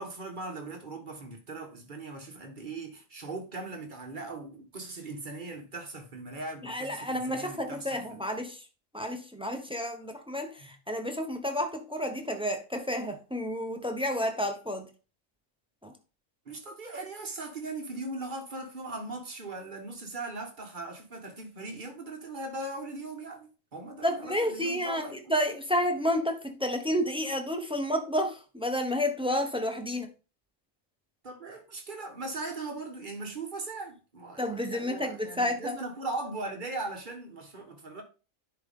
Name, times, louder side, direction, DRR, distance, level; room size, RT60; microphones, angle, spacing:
voice 1, 0.0-8.2 10.6-10.7 16.4-25.4 31.2-38.0, right 2 dB, 40° right, 1.5 m, -39 dB
voice 2, 6.6-8.7 8.9-14.9 15.8-15.9 24.0-30.1 34.4-35.8, equal, 5° right, 0.6 m, -30 dB
10.5 x 3.5 x 3.7 m
omnidirectional pair, 1.4 m